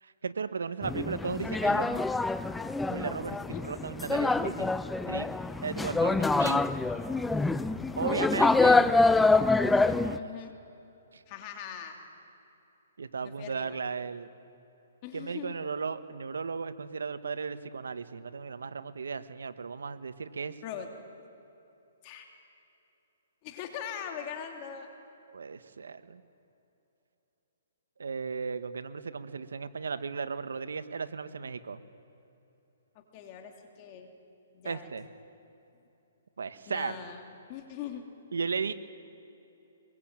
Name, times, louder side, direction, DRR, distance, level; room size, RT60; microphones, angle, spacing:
voice 1, 0.0-2.0 2.9-4.7 5.1-5.3 5.6-6.6 8.0-8.9 9.9-10.3 11.1-11.2 13.0-14.3 15.1-20.6 25.3-26.2 28.0-31.8 34.6-35.1 36.4-37.0 38.3-38.7, right 5 dB, 90° right, 11 dB, 1.4 m, -35 dB
sound 1, 0.8-10.2, left 3 dB, 5° left, 0.5 m, -26 dB
voice 2, 10.1-10.5 11.3-12.0 13.2-13.8 15.0-15.6 20.6-20.9 22.0-22.3 23.4-24.9 32.9-34.1 34.5-34.9 36.7-37.2 37.5-38.0, left 9 dB, 30° left, 3 dB, 3.0 m, -41 dB
24.0 x 22.0 x 9.0 m, 3.0 s
hypercardioid pair, 155°, 0 cm